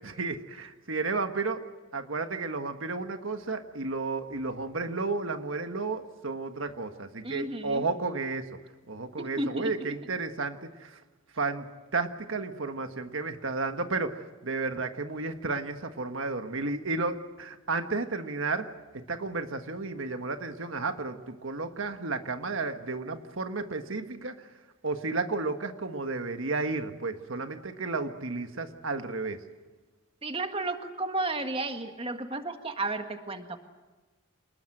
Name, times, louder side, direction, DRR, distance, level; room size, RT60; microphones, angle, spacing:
voice 1, 0.0-1.6 1.9-8.5 8.9-11.0 11.3-18.7 18.9-24.3 24.8-29.4, right 3 dB, 70° right, 7 dB, 1.5 m, -32 dB
voice 2, 7.2-7.9 9.2-9.7 30.2-33.6, right 2 dB, 25° right, 6 dB, 1.7 m, -33 dB
28.0 x 20.0 x 7.8 m, 1.2 s
head